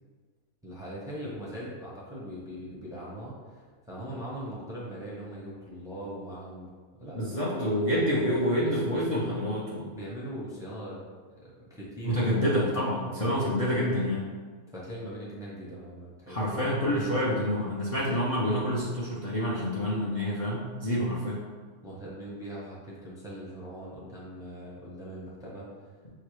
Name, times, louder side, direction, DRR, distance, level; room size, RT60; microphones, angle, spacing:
voice 1, 0.6-6.7 7.0-8.2 8.6-9.1 9.9-11.0 11.3-12.2 13.0-13.3 14.7-17.4 21.8-25.7, equal, 5° right, -6 dB, 0.6 m, -40 dB
voice 2, 7.1-9.9 12.0-14.2 16.3-21.4, equal, 40° left, -7 dB, 0.5 m, -28 dB
6.7 x 2.3 x 3.1 m, 1.5 s
omnidirectional pair, 1.5 m